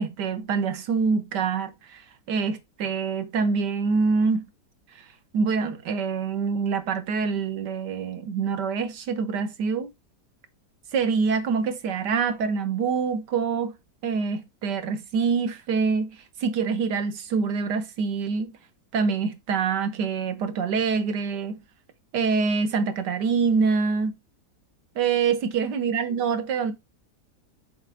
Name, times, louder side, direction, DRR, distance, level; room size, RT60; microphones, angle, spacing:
voice 1, 0.0-2.0 2.3-4.5 5.3-9.9 10.9-13.7 14.0-18.5 18.9-21.6 22.1-24.2 25.0-26.7, right 5 dB, 85° right, 1.7 m, -25 dB
6.5 x 4.4 x 3.4 m
omnidirectional pair, 1.8 m